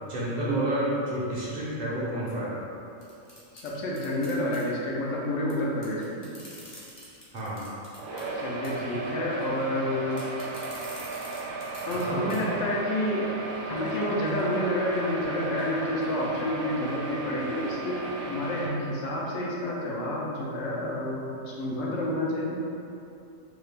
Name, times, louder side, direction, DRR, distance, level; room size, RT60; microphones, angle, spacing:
voice 1, 0.0-2.5 7.3-7.6 12.0-12.6, right 1 dB, 45° right, -7 dB, 0.6 m, -30 dB
sound 1, 3.0-4.6 5.5-5.6 5.8-8.3 8.6-8.9 10.1-12.0 12.3-12.4 12.8-12.9, left 1 dB, 40° left, 0.3 m, -47 dB
voice 2, 3.5-6.2 8.3-10.3 11.8-13.3 13.6-22.6, left 1 dB, 75° left, -4 dB, 0.9 m, -29 dB
sound 2, 7.9-18.7, right 3 dB, 70° right, 0.9 m, -35 dB
2.9 x 2.3 x 3.3 m, 2.7 s
omnidirectional pair, 1.4 m